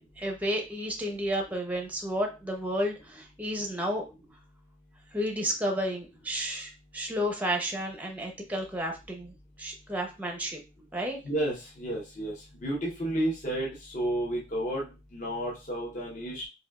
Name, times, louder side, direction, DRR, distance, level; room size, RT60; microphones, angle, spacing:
voice 1, 0.2-4.0 5.1-9.3 9.6-10.6 10.9-11.2, equal, 10° right, 2 dB, 0.6 m, -31 dB
voice 2, 11.2-16.5, right 1 dB, 45° left, -4 dB, 0.9 m, -32 dB
5.2 x 2.3 x 2.3 m, 0.28 s
head